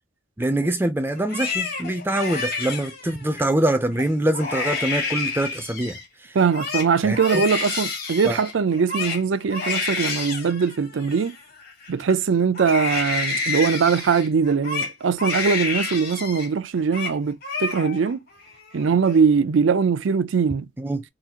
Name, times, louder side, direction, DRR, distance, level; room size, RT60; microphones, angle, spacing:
voice 1, 0.4-6.4 7.0-7.4 8.2-8.4 20.8-21.0, right 1 dB, 10° right, 0.4 m, -24 dB
Crying sobbing, 1.2-3.4 3.9-4.1 4.3-6.1 6.4-12.1 12.5-16.5 16.8-17.2 17.4-18.1 18.5-19.1, left 4 dB, 55° left, 1.1 m, -29 dB
voice 2, 6.3-11.3 11.9-18.2 18.7-20.7, right 5 dB, 80° right, 0.4 m, -21 dB
3.9 x 2.4 x 2.8 m
head